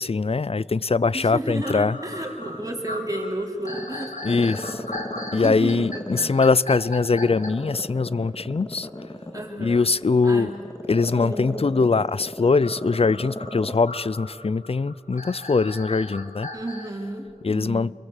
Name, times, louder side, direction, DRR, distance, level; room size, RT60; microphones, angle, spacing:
voice 1, 0.0-2.0 4.2-4.8 5.3-8.9 9.6-10.5 10.9-16.5 17.4-17.9, left 4 dB, 50° left, 21 dB, 0.5 m, -22 dB
voice 2, 1.1-4.1 4.8-4.9 5.3-6.0 9.3-9.9 10.2-10.6 11.2-11.7 16.5-17.9, right 1 dB, 25° right, 1 dB, 4.0 m, -32 dB
Growling, 1.4-3.2 3.6-6.6 7.0-13.9 14.2-14.3, left 1 dB, 25° left, 2.0 m, -35 dB
sound 1, 1.6-7.5 12.6-16.9, left 2 dB, 70° left, 3.3 m, -37 dB
28.5 x 22.5 x 8.2 m, 2.7 s
wide cardioid pair, 65°, 13 cm